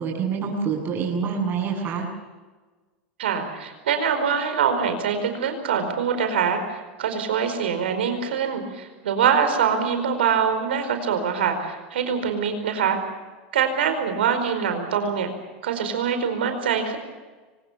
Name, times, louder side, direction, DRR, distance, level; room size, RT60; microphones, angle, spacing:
voice 1, 0.0-2.1, right 6 dB, 35° right, 0 dB, 7.9 m, -26 dB
voice 2, 3.2-13.0 13.5-15.3 15.6-17.0, right 7 dB, 90° right, 7 dB, 4.8 m, -24 dB
24.5 x 20.0 x 7.0 m, 1.3 s
supercardioid pair, 115°, 6 cm